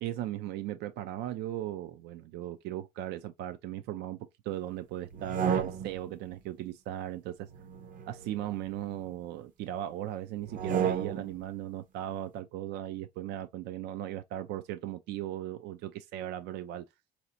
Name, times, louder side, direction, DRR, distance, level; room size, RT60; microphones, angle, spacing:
voice 1, 0.0-4.2 4.4-7.5 8.1-16.8, right 13 dB, 80° right, 0.4 m, -37 dB
sound 1, 5.1-6.2 7.5-9.1 10.4-11.4, right 8 dB, 50° right, 0.7 m, -33 dB
4.1 x 2.8 x 2.6 m
cardioid pair, 110°, 17 cm